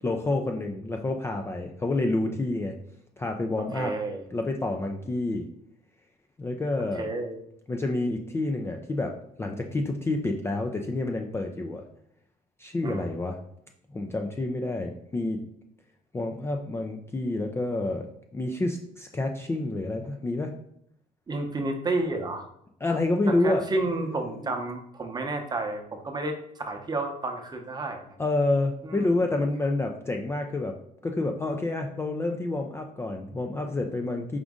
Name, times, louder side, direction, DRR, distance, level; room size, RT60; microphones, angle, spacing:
voice 1, 0.0-2.8 3.2-3.9 4.3-5.5 6.4-7.0 7.7-11.8 12.6-13.4 13.9-15.4 16.1-18.1 18.3-20.5 22.8-23.7 24.3-24.5 28.2-30.8 31.0-34.4, left 2 dB, 15° left, 3 dB, 0.4 m, -28 dB
voice 2, 3.7-4.2 7.0-7.4 12.8-13.1 21.3-22.5 23.3-28.1 28.8-29.1, right 2 dB, 25° right, 4 dB, 0.7 m, -31 dB
5.0 x 2.5 x 3.6 m, 0.72 s
cardioid pair, 110°, 17 cm